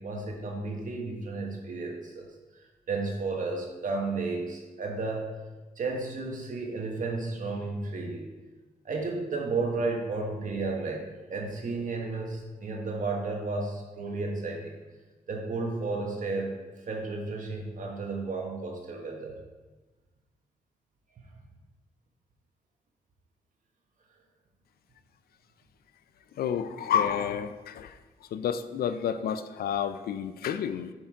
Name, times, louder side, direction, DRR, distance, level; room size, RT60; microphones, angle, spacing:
voice 1, 0.0-2.3 2.9-5.4 5.8-8.3 8.8-14.7 15.3-16.5 16.9-19.3, right 3 dB, 55° right, 1 dB, 1.4 m, -33 dB
voice 2, 26.4-28.0 28.3-30.9, left 8 dB, 80° left, 11 dB, 0.5 m, -30 dB
7.5 x 4.4 x 4.7 m, 1.2 s
cardioid pair, 95°, 16 cm